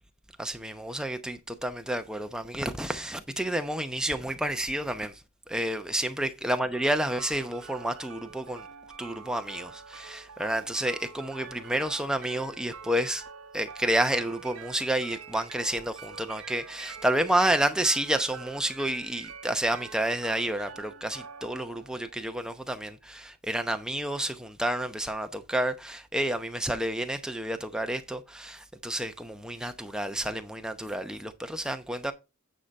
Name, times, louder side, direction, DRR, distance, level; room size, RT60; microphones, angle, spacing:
voice 1, 0.4-5.2 5.5-8.7 9.0-13.2 13.5-32.1, right 1 dB, 5° right, 0.8 m, -30 dB
sound 1, 6.7-22.7, right 6 dB, 65° right, 0.8 m, -46 dB
9.1 x 5.0 x 4.1 m
head